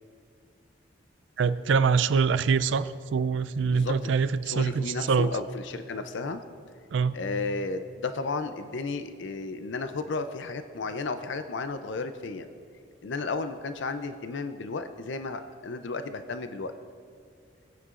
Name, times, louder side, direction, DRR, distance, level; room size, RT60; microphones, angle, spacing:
voice 1, 1.4-5.3 6.9-7.2, right 5 dB, 70° right, 14 dB, 0.4 m, -24 dB
voice 2, 3.6-4.0 4.4-6.4 7.1-12.5 13.0-16.7, left 3 dB, 70° left, 9 dB, 0.5 m, -33 dB
20.0 x 9.6 x 2.5 m, 2.2 s
head